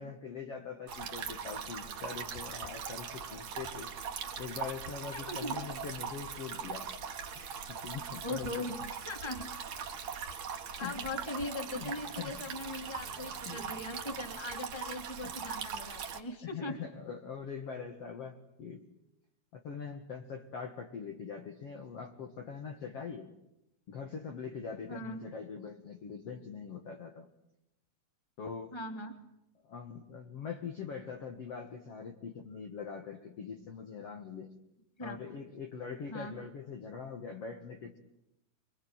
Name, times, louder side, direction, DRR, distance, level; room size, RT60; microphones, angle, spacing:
voice 1, 0.0-3.9 4.4-6.9 7.4-8.7 10.8-11.0 11.7-12.3 13.5-13.6 15.2-15.4 16.4-18.9 19.5-23.3 23.9-27.3 28.4-28.8 29.6-34.5 35.0-38.0, left 6 dB, 50° left, 4 dB, 2.1 m, -43 dB
sound 1, 0.9-16.2, right 6 dB, 50° right, 2.8 m, -41 dB
voice 2, 5.1-5.5 8.2-8.8 9.0-9.5 10.8-16.8 24.9-25.2 28.7-29.1 35.0-35.2 36.1-36.3, left 2 dB, 10° left, 5 dB, 2.3 m, -40 dB
27.0 x 23.5 x 8.9 m, 0.85 s
omnidirectional pair, 4.6 m